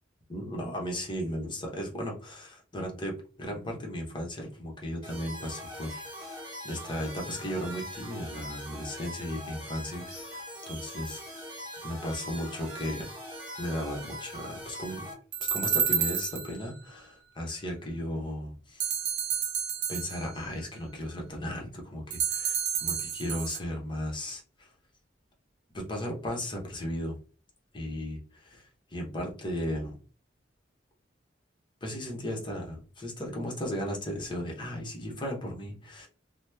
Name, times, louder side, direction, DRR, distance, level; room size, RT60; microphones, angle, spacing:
voice 1, 0.3-6.4 6.6-11.4 11.8-13.1 13.6-15.0 15.5-18.9 19.9-24.7 25.7-27.2 27.7-30.0 31.8-36.1, equal, 25° left, 0 dB, 0.8 m, -36 dB
sound 1, 5.0-15.1, equal, 25° right, 1.4 m, -42 dB
sound 2, 15.3-16.7 18.8-20.5 22.1-23.6, right 8 dB, 65° right, 0.6 m, -30 dB
2.9 x 2.0 x 3.3 m, 0.37 s
head